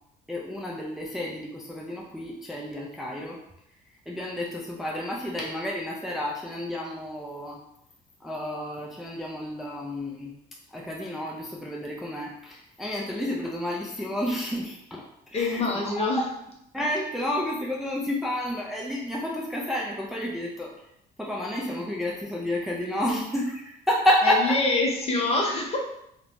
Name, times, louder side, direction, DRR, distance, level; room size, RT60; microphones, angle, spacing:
voice 1, 0.3-3.4 4.1-7.7 8.2-10.3 10.7-16.2 16.7-20.9 21.2-24.6, left 1 dB, ahead, -3 dB, 0.3 m, -30 dB
voice 2, 15.3-16.2 24.2-25.8, left 2 dB, 35° left, 0 dB, 0.7 m, -25 dB
2.9 x 2.1 x 2.5 m, 0.77 s
cardioid pair, 110°, 17 cm